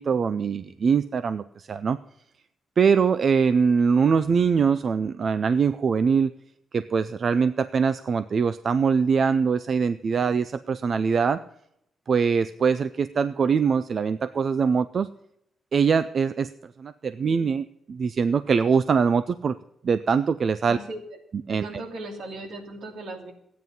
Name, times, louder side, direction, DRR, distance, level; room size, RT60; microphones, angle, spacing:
voice 1, 0.0-2.0 2.8-6.3 6.7-11.4 12.1-15.1 15.7-16.5 16.8-19.6 19.8-20.8 21.5-21.8, right 6 dB, 45° right, 13 dB, 0.4 m, -23 dB
voice 2, 20.7-21.0 21.5-23.3, right 2 dB, 70° right, 3 dB, 2.8 m, -37 dB
14.5 x 9.4 x 5.3 m, 0.74 s
cardioid pair, 140°, 0 cm